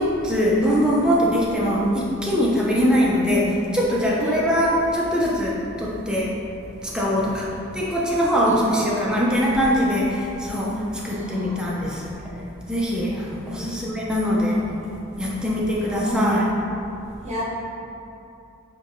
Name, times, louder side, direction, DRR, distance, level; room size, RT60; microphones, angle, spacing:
voice 1, 0.0-6.4 6.8-7.5 7.7-12.1 12.7-14.6 15.2-16.5, equal, 5° right, -5 dB, 0.4 m, -22 dB
voice 2, 8.4-9.0 11.1-11.5 13.5-13.7 15.9-16.5 17.2-17.4, right 1 dB, 30° right, -7 dB, 0.8 m, -32 dB
4.4 x 2.9 x 2.5 m, 2.8 s
head